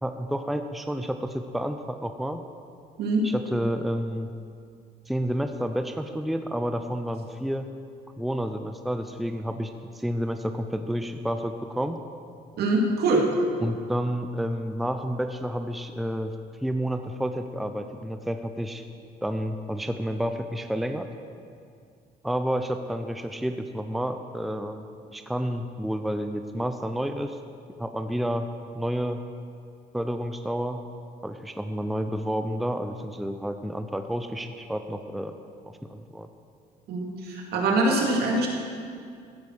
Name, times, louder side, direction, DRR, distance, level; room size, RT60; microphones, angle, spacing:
voice 1, 0.0-2.4 3.2-4.3 5.1-7.7 8.2-12.0 13.6-16.3 16.6-18.8 19.2-21.1 22.2-24.9 25.1-27.4 27.8-28.5 28.7-29.2 29.9-30.8 31.2-35.4 35.6-36.3, equal, ahead, 7 dB, 0.6 m, -30 dB
voice 2, 3.0-3.3 12.6-13.3 36.9-38.5, right 2 dB, 70° right, 0 dB, 2.6 m, -23 dB
15.5 x 8.3 x 6.4 m, 2.3 s
cardioid pair, 110°, 17 cm